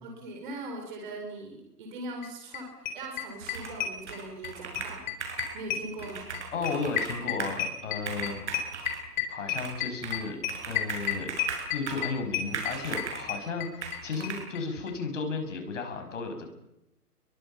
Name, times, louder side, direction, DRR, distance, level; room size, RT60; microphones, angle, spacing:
voice 1, 0.0-5.0 5.5-6.3 8.2-8.4, right 2 dB, 30° right, 2 dB, 4.4 m, -40 dB
sound 1, 2.2-2.3 2.5-2.6 2.9-4.5 4.8-14.0 14.2-14.3 14.6-14.7 14.9-15.0, left 10 dB, 30° left, 4.3 m, -31 dB
Computer keyboard, 3.4-5.6 6.0-7.6 8.0-9.0 9.6-10.2 10.5-12.1 12.5-13.3 13.8-14.4, right 5 dB, 45° right, 7.3 m, -37 dB
voice 2, 6.5-8.4 9.3-10.4 10.6-11.3 11.7-16.5, left 4 dB, 50° left, 5 dB, 6.9 m, -34 dB
29.5 x 23.0 x 5.9 m, 0.85 s
hypercardioid pair, 160°, 47 cm